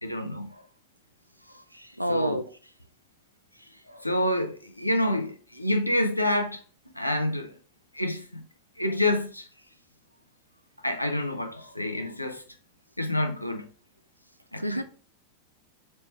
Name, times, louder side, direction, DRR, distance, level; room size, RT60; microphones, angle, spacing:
voice 1, 0.0-0.6 2.1-2.4 3.9-6.6 7.0-7.5 7.9-8.4 8.8-9.5 10.8-12.4 13.0-13.7 14.5-14.8, left 1 dB, 85° left, 0.6 m, -28 dB
voice 2, 1.7-2.4 3.6-3.7 14.6-14.8, equal, 90° right, 0.4 m, -29 dB
4.3 x 3.1 x 3.2 m
figure-of-eight pair, 90°, 0 cm